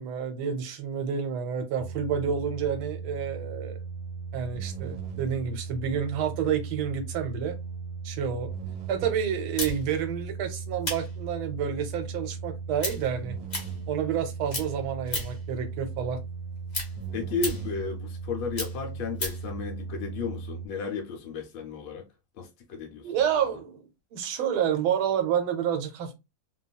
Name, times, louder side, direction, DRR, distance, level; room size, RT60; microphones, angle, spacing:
voice 1, 0.0-3.8 4.3-7.5 8.0-8.5 8.9-13.4 13.9-16.2 23.0-26.1, right 8 dB, 80° right, 1.5 m, -29 dB
sound 1, 1.8-20.7, right 5 dB, 65° right, 1.2 m, -37 dB
sound 2, 9.6-14.2 14.5-15.5 15.9-19.5, left 1 dB, 35° left, 0.7 m, -35 dB
voice 2, 17.1-22.0 22.4-23.1, left 5 dB, 75° left, 1.3 m, -34 dB
3.3 x 2.3 x 2.2 m
omnidirectional pair, 2.2 m